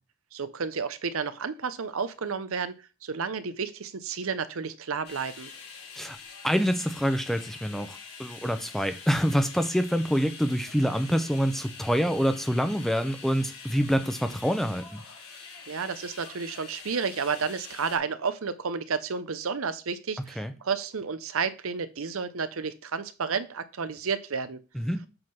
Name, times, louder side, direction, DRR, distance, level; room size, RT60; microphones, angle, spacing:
voice 1, 0.3-2.8 3.0-5.5 15.7-24.6, right 5 dB, 70° right, 0.7 m, -31 dB
sound 1, 5.0-18.0, left 5 dB, 85° left, 3.4 m, -45 dB
voice 2, 6.4-15.0 20.4-20.5 24.7-25.0, equal, ahead, 0.6 m, -26 dB
7.8 x 3.8 x 5.8 m
head